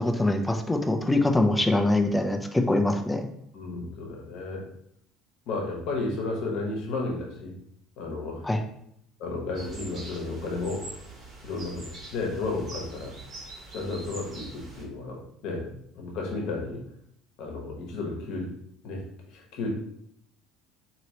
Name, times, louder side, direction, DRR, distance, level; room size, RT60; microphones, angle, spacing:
voice 1, 0.0-3.3 8.4-8.6, left 2 dB, 10° left, 4 dB, 0.4 m, -24 dB
voice 2, 3.5-4.7 5.5-7.6 8.0-8.5 9.2-10.9 11.4-13.1 13.7-16.8 17.4-18.5 18.8-19.0 19.3-19.7, left 3 dB, 70° left, 0 dB, 0.9 m, -33 dB
sound 1, 9.5-14.8, right 2 dB, 45° right, 1.4 m, -44 dB
3.0 x 2.8 x 2.8 m, 0.72 s
supercardioid pair, 85°, 0 cm